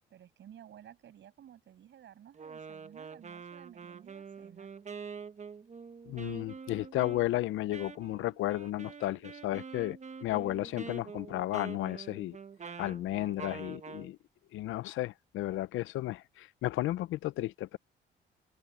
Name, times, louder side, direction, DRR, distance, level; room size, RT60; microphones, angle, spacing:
voice 1, 0.1-4.7, right 10 dB, 70° right, 7.6 m, -54 dB
Wind instrument woodwind instrument, 2.3-14.1, right 5 dB, 35° right, 1.2 m, -46 dB
voice 2, 6.1-12.4 12.8-14.2 14.5-17.8, left 15 dB, 85° left, 0.7 m, -33 dB
open air
cardioid pair, 90°, 20 cm